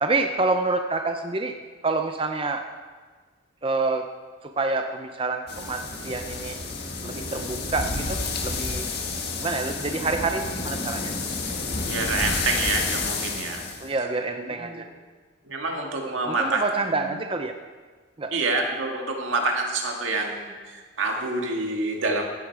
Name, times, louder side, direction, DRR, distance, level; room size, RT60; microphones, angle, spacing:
voice 1, 0.0-1.5 1.8-2.6 3.6-4.0 4.4-6.6 7.0-8.9 9.4-11.1 13.8-14.8 16.3-17.5 18.2-18.3, right 3 dB, 25° right, 5 dB, 0.6 m, -27 dB
sound 1, 5.5-13.9, left 3 dB, 50° left, 1.8 m, -30 dB
voice 2, 11.8-13.6 14.3-14.8 15.4-17.2 18.3-22.3, right 3 dB, 80° right, 1 dB, 2.1 m, -27 dB
15.5 x 11.0 x 4.8 m, 1.5 s
head